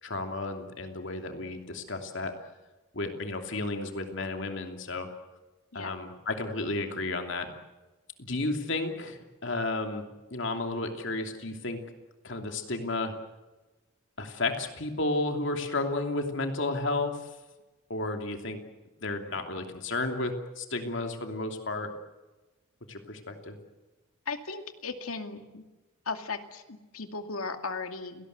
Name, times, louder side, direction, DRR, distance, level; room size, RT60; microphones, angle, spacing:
voice 1, 0.0-2.3 2.9-5.1 5.7-7.5 8.2-11.8 12.2-13.1 14.2-17.2 17.9-18.6 19.0-21.9 22.9-23.6, left 2 dB, 60° left, 5 dB, 2.8 m, -32 dB
voice 2, 24.3-25.6 26.1-28.3, left 4 dB, 85° left, 6 dB, 2.4 m, -36 dB
29.5 x 18.5 x 8.1 m, 1.1 s
head